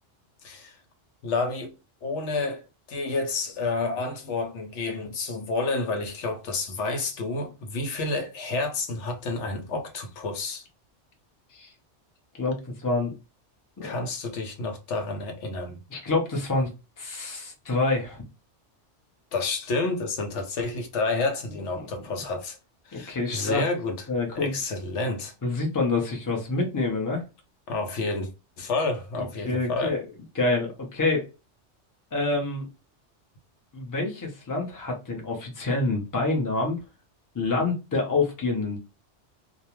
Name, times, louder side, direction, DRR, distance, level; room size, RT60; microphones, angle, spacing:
voice 1, 0.4-0.8 1.2-1.7 2.0-2.6 2.9-10.6 13.8-15.8 19.3-22.6 22.9-24.0 24.4-25.3 27.7-28.3 28.6-30.0, left 3 dB, 80° left, 1.0 m, -29 dB
voice 2, 12.3-13.1 13.8-14.1 15.9-16.7 17.0-18.2 21.8-21.9 22.9-23.6 24.1-24.5 25.4-27.2 29.2-30.0 30.3-31.3 32.1-32.7 33.7-36.8 37.3-38.8, left 3 dB, 20° left, 0.6 m, -27 dB
2.4 x 2.1 x 2.9 m
omnidirectional pair, 1.2 m